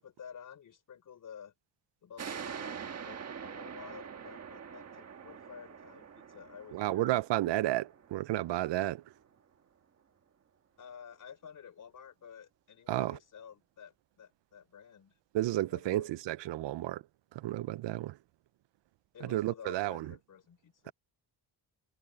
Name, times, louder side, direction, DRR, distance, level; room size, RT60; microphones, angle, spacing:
voice 1, 0.0-1.5 2.0-7.5 10.8-15.2 15.5-16.2 19.1-20.9, left 7 dB, 45° left, 3.8 m, -51 dB
sound 1, 2.2-9.3, right 7 dB, 35° right, 1.5 m, -45 dB
voice 2, 6.7-9.0 12.9-13.2 15.3-17.0 17.3-18.2 19.2-20.1, right 15 dB, 75° right, 0.7 m, -32 dB
cardioid pair, 160°, 43 cm